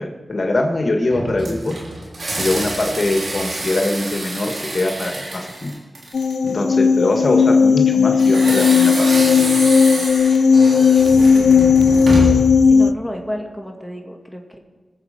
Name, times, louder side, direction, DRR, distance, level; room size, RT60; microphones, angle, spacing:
voice 1, 0.0-1.8 2.4-5.7 6.4-9.1, left 2 dB, 50° left, 3 dB, 1.7 m, -22 dB
sound 1, 1.1-6.5 8.2-12.5, right 2 dB, 80° right, 3.4 m, -26 dB
sound 2, 6.1-12.9, left 6 dB, 85° left, 0.3 m, -14 dB
voice 2, 11.2-12.1 12.7-14.6, equal, ahead, 2 dB, 2.3 m, -32 dB
21.0 x 7.5 x 5.2 m, 1.3 s
cardioid pair, 45°, 0 cm